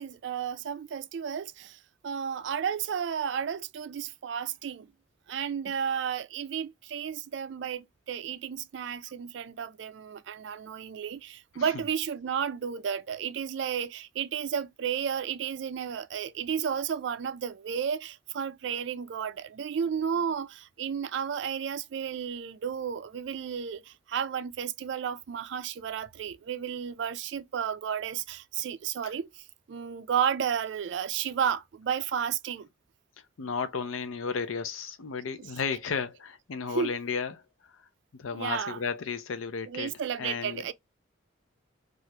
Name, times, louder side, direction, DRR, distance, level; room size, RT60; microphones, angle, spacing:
voice 1, 0.0-4.9 5.3-32.7 35.4-35.6 36.7-37.0 38.3-38.8 39.7-40.7, right 7 dB, 60° right, 0.3 m, -32 dB
voice 2, 11.5-11.9 29.0-29.1 33.4-37.4 37.8-37.9 38.1-40.7, left 5 dB, 80° left, 0.5 m, -34 dB
2.8 x 2.4 x 3.1 m
head